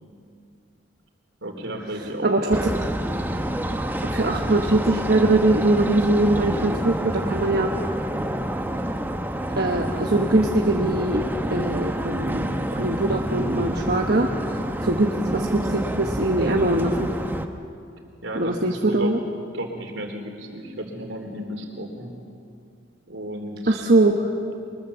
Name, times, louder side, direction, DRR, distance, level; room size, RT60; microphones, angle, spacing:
voice 1, 1.4-2.6 18.2-19.3 19.5-22.2 23.1-23.8, right 1 dB, 70° right, 3 dB, 3.3 m, -33 dB
voice 2, 2.2-2.6 4.0-7.7 9.6-17.1 18.3-19.2 23.7-24.3, right 2 dB, 50° right, 1 dB, 1.2 m, -22 dB
sound 1, 2.5-17.5, right 1 dB, 10° right, 0.9 m, -28 dB
23.5 x 21.0 x 7.0 m, 2.5 s
head